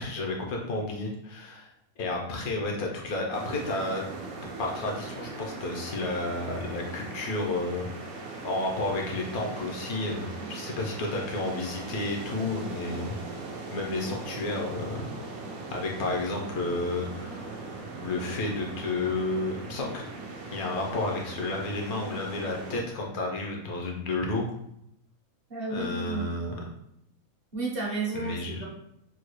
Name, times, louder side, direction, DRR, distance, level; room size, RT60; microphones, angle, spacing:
voice 1, 0.0-1.7 2.0-4.0 4.6-7.9 8.4-13.2 13.7-15.1 15.3-17.6 18.0-20.0 20.5-24.5 25.7-26.6 28.1-28.7, left 2 dB, 85° left, 0 dB, 1.3 m, -31 dB
sound 1, 3.3-22.8, right 3 dB, 80° right, 1.1 m, -40 dB
voice 2, 25.5-26.2 27.5-28.7, right 3 dB, 50° right, -3 dB, 0.9 m, -32 dB
3.9 x 2.2 x 3.0 m, 0.77 s
omnidirectional pair, 1.5 m